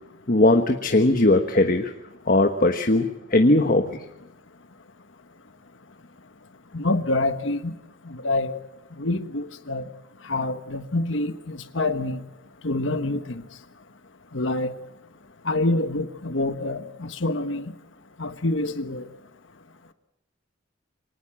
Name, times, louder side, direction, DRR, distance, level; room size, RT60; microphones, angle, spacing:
voice 1, 0.3-1.9 2.3-3.9, left 2 dB, 45° left, 6 dB, 1.3 m, -19 dB
voice 2, 6.7-7.7 8.0-8.5 9.0-9.8 10.2-12.2 12.6-13.4 14.3-14.7 15.4-17.7 18.2-19.0, left 2 dB, 75° left, 9 dB, 1.3 m, -26 dB
25.0 x 19.0 x 7.6 m, 0.92 s
head